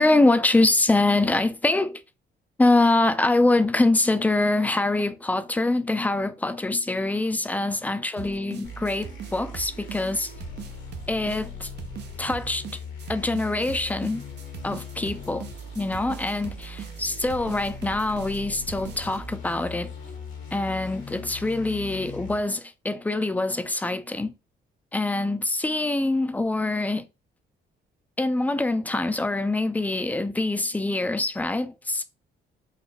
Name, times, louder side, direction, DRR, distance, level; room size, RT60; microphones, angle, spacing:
voice 1, 0.0-2.0 2.6-10.3 11.1-11.7 12.2-12.6 13.1-14.2 14.6-15.5 15.8-19.9 20.5-24.3 24.9-27.1 28.2-32.0, left 2 dB, 10° left, 0.4 m, -24 dB
sound 1, 8.2-19.2, right 8 dB, 60° right, 0.6 m, -41 dB
sound 2, 8.6-22.4, left 3 dB, 75° left, 1.2 m, -40 dB
3.9 x 2.2 x 3.3 m
cardioid pair, 90°, 20 cm